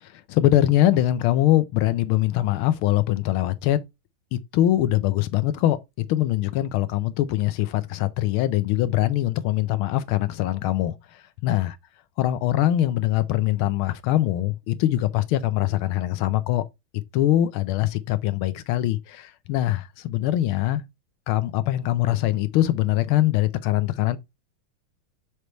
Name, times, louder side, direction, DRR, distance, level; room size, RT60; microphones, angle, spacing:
voice 1, 0.0-3.8 4.3-10.9 11.4-11.8 12.2-16.6 17.1-20.8 21.3-24.2, left 13 dB, 85° left, 1.6 m, -23 dB
6.7 x 3.2 x 4.3 m
omnidirectional pair, 2.3 m